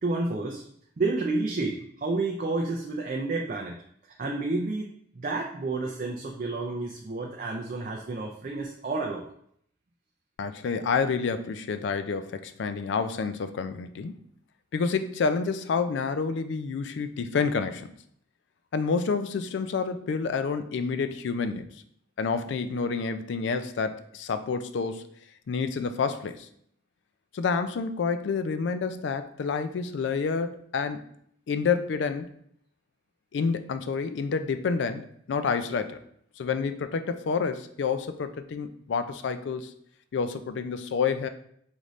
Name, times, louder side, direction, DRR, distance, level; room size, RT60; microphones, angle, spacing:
voice 1, 0.0-0.6 1.0-3.8 4.2-9.3, right 3 dB, 45° right, 0 dB, 0.4 m, -30 dB
voice 2, 10.4-14.2 14.7-17.9 18.7-21.8 22.2-25.0 25.5-26.5 27.3-31.0 31.5-32.3 33.3-36.0 36.4-39.7 40.1-41.3, left 5 dB, 70° left, 10 dB, 0.3 m, -29 dB
4.9 x 2.6 x 3.1 m, 0.67 s
head